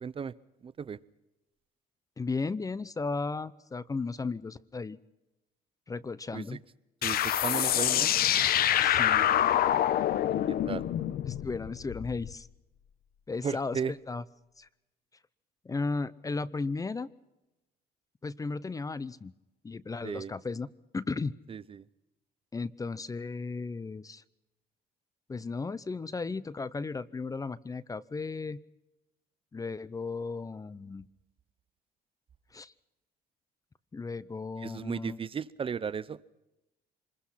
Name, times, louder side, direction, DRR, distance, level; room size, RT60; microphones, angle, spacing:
voice 1, 0.0-0.3 0.6-1.0 6.3-6.6 7.0-8.1 10.5-10.9 13.4-13.9 20.0-20.3 21.5-21.9 34.6-36.2, right 6 dB, 30° right, 18 dB, 0.7 m, -35 dB
voice 2, 2.2-5.0 5.9-6.6 8.8-9.5 11.3-12.5 13.3-14.2 14.6-14.7 15.6-17.1 18.2-19.3 19.6-20.7 20.9-21.3 22.5-24.2 25.3-28.6 29.5-31.1 32.5-32.7 33.9-35.2, left 4 dB, 20° left, 19 dB, 0.7 m, -35 dB
sound 1, 7.0-12.3, left 11 dB, 60° left, 1.0 m, -26 dB
26.0 x 21.5 x 5.8 m, 0.95 s
cardioid pair, 110°, 17 cm